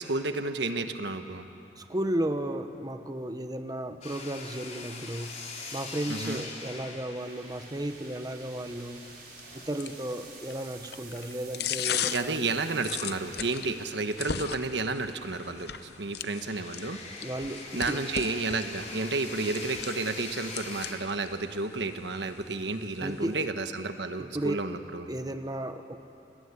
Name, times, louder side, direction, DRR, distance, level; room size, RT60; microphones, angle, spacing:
voice 1, 0.0-1.5 6.1-6.4 12.1-17.0 17.7-25.1, right 3 dB, 80° right, 8 dB, 1.4 m, -31 dB
voice 2, 1.8-5.4 5.7-9.0 9.5-12.4 17.2-18.0 23.0-23.5 24.2-24.6 25.1-26.0, right 1 dB, 20° right, 7 dB, 1.1 m, -34 dB
sound 1, 4.0-10.6 11.2-11.4 11.6-15.2 15.5-15.6 16.2-20.9, left 3 dB, 40° left, 4.3 m, -44 dB
sound 2, 7.1-18.3, right 4 dB, 55° right, 5.0 m, -51 dB
sound 3, 7.5-23.5, left 8 dB, 65° left, 0.8 m, -40 dB
28.0 x 20.0 x 9.8 m, 2.9 s
head